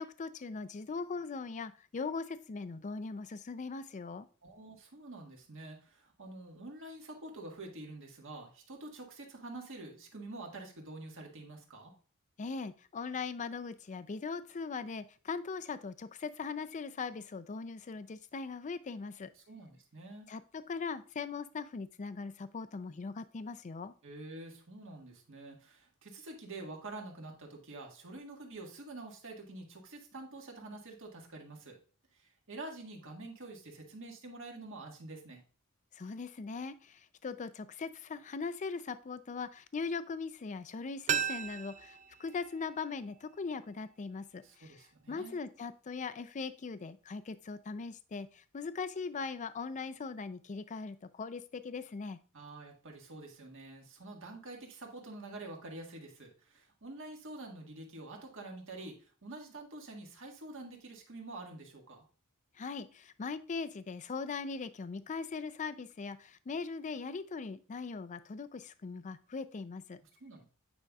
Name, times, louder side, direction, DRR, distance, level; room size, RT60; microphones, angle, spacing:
voice 1, 0.0-4.3 12.4-19.3 20.3-23.9 35.9-44.8 45.1-52.2 62.6-70.0, left 4 dB, 35° left, 13 dB, 0.4 m, -40 dB
voice 2, 4.4-11.9 19.3-20.3 24.0-31.8 32.1-35.4 44.4-45.4 52.3-62.1 70.0-70.4, right 2 dB, 60° right, 1 dB, 1.6 m, -47 dB
sound 1, 41.1-43.9 44.2-44.3, right 8 dB, 35° right, 0.4 m, -38 dB
9.0 x 5.2 x 2.3 m, 0.38 s
head